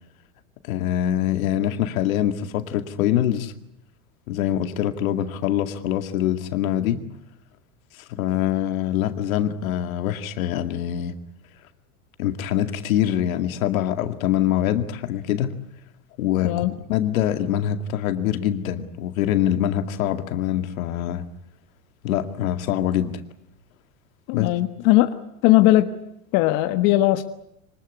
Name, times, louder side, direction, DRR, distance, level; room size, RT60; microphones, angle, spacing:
voice 1, 0.6-3.5 4.3-7.0 8.2-11.2 12.2-15.6 16.2-21.2 22.0-23.1 24.3-24.5, left 11 dB, 80° left, 8 dB, 2.3 m, -24 dB
voice 2, 24.3-25.1 25.4-25.9 26.3-27.2, left 16 dB, 55° left, 8 dB, 1.5 m, -18 dB
24.5 x 20.0 x 9.7 m, 0.79 s
supercardioid pair, 125°, 41 cm